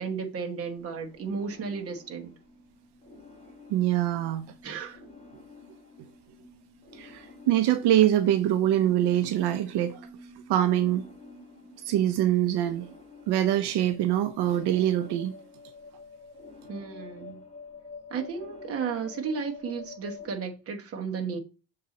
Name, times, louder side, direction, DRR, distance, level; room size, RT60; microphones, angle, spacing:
voice 1, 0.0-2.3 4.6-5.0 16.7-17.4 18.1-21.4, right 5 dB, 35° right, 1.1 m, -34 dB
sound 1, 0.6-20.3, left 3 dB, 15° left, 1.3 m, -49 dB
voice 2, 3.7-4.5 6.9-10.0 10.5-11.0 11.8-12.9 13.3-15.3, right 12 dB, 70° right, 0.6 m, -24 dB
6.7 x 3.8 x 4.0 m
cardioid pair, 170°, 42 cm